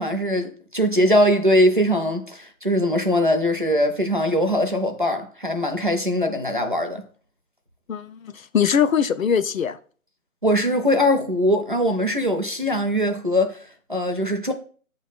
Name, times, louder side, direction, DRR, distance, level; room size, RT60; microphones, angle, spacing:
voice 1, 0.0-7.0 10.4-14.5, equal, 40° right, 0.5 m, -21 dB
voice 2, 7.9-9.8, left 7 dB, 70° left, 0.6 m, -22 dB
7.5 x 3.1 x 4.1 m
hypercardioid pair, 180°, 42 cm